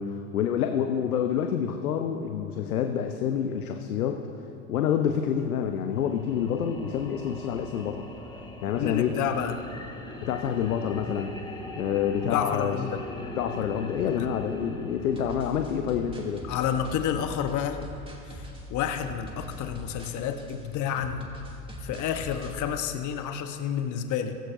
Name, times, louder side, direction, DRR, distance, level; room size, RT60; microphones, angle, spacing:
voice 1, 0.0-4.2 4.7-8.1 8.6-9.2 10.2-11.3 11.7-12.8 13.4-16.4, left 8 dB, 80° left, 5 dB, 0.8 m, -28 dB
sound 1, 5.9-16.3, left 1 dB, 10° left, 2.0 m, -41 dB
voice 2, 8.8-9.6 12.2-13.0 14.2-14.3 16.5-17.8 18.3-18.4 18.7-21.3 21.8-24.4, left 9 dB, 45° left, 7 dB, 1.0 m, -30 dB
sound 2, 15.1-22.6, equal, 10° right, 2.5 m, -43 dB
16.0 x 15.5 x 2.6 m, 2.9 s
hypercardioid pair, 85°, 43 cm